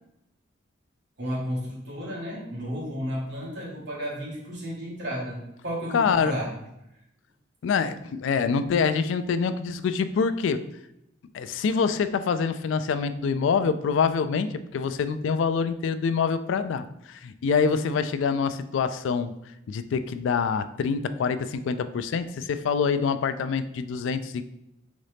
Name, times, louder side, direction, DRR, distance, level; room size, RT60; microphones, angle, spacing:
voice 1, 1.2-6.6, equal, 60° right, -5 dB, 1.5 m, -33 dB
voice 2, 5.9-6.3 7.6-10.6 11.3-19.3 19.7-24.5, left 5 dB, 75° left, 12 dB, 0.3 m, -25 dB
4.1 x 3.7 x 3.4 m, 0.84 s
head